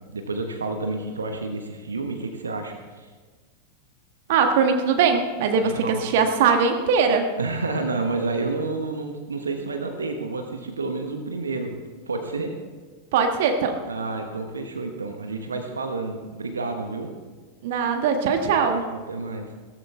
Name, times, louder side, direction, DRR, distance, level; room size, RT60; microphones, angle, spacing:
voice 1, 0.1-3.1 5.6-6.0 7.4-11.7 12.1-12.5 13.9-17.1 18.6-19.5, right 3 dB, 75° right, 5 dB, 1.3 m, -30 dB
voice 2, 4.3-7.3 13.1-13.8 17.6-18.8, right 5 dB, 50° right, 5 dB, 1.4 m, -21 dB
17.0 x 14.0 x 3.4 m, 1.4 s
figure-of-eight pair, 90°, 0 cm